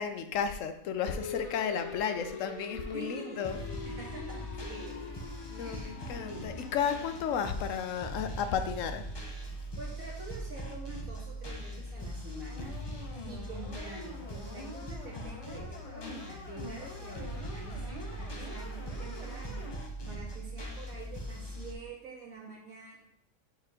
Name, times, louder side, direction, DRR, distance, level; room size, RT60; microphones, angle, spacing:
voice 1, 0.0-3.6 5.5-9.0, left 7 dB, 70° left, 8 dB, 0.9 m, -33 dB
sound 1, 1.0-9.3, left 4 dB, 85° left, 1.5 m, -44 dB
voice 2, 2.9-3.5 3.9-5.2 5.6-6.7 9.8-12.7 13.3-23.0, right 3 dB, 80° right, -4 dB, 2.2 m, -46 dB
sound 2, 3.4-21.7, equal, 30° left, 0.5 m, -41 dB
sound 3, 12.5-19.7, left 2 dB, 55° left, 1.7 m, -47 dB
4.8 x 4.4 x 4.9 m, 0.71 s
omnidirectional pair, 1.4 m